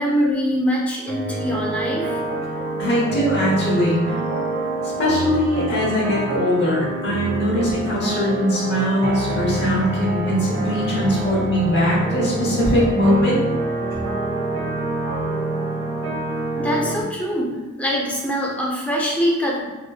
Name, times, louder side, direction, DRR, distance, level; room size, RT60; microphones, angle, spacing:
voice 1, 0.0-2.2 16.6-19.6, equal, 5° left, -3 dB, 0.5 m, -23 dB
sound 1, 1.1-17.0, right 2 dB, 60° right, 0.6 m, -26 dB
voice 2, 2.8-4.2 5.0-13.4, equal, 55° left, -5 dB, 0.9 m, -21 dB
3.0 x 2.9 x 2.3 m, 1.2 s
head